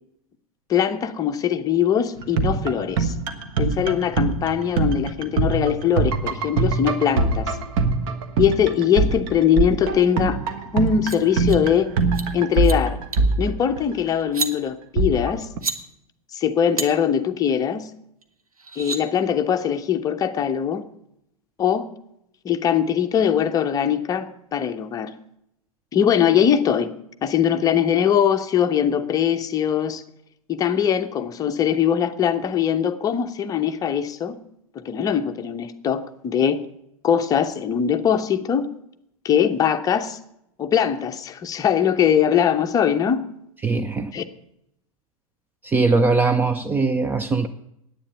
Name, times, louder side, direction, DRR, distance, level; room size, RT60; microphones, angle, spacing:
voice 1, 0.7-3.1 3.6-7.5 8.4-10.4 10.7-11.9 12.3-13.0 13.4-15.5 16.3-17.9 18.8-20.8 21.6-21.9 22.4-24.3 24.5-25.1 25.9-26.9 27.2-30.0 30.5-34.4 34.7-36.6 37.0-38.7 39.2-40.2 40.6-43.2 44.1-44.2, left 8 dB, 20° left, 0.8 m, -21 dB
sound 1, 2.2-14.1 15.0-15.6, right 4 dB, 40° right, 1.3 m, -23 dB
sound 2, 10.9-11.2 11.5-11.6 12.0-12.3 12.5-12.8 13.1-13.3 14.2-14.5 15.4-15.8 16.8-16.9 18.2-18.3 18.6-19.0, right 4 dB, 75° right, 1.2 m, -29 dB
voice 2, 43.6-44.1 45.6-47.5, right 3 dB, 10° right, 0.4 m, -20 dB
10.0 x 9.0 x 8.1 m
figure-of-eight pair, 95°, 19 cm